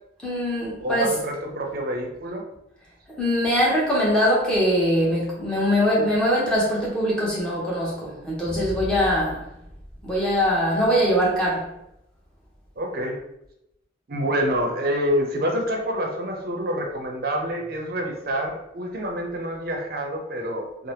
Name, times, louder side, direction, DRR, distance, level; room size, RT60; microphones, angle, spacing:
voice 1, 0.2-1.2 3.2-9.4 10.0-11.7, equal, 5° left, -6 dB, 0.8 m, -22 dB
voice 2, 0.8-2.4 12.8-13.2 14.1-20.9, equal, 55° right, 1 dB, 0.5 m, -27 dB
2.8 x 2.0 x 3.2 m, 0.82 s
head